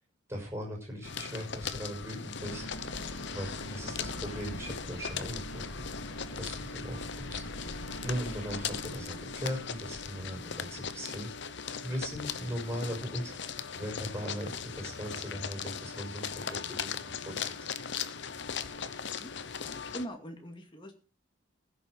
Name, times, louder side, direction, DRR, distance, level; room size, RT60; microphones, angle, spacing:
voice 1, 0.3-2.6 3.3-5.8 6.0-17.7, equal, 10° right, 1 dB, 6.0 m, -39 dB
sound 1, 1.0-20.1, left 6 dB, 55° left, 0.9 m, -39 dB
sound 2, 2.4-10.6, left 1 dB, 85° left, 2.6 m, -44 dB
voice 2, 19.6-20.9, equal, 25° left, 3 dB, 2.3 m, -42 dB
15.5 x 7.1 x 6.4 m, 0.35 s
head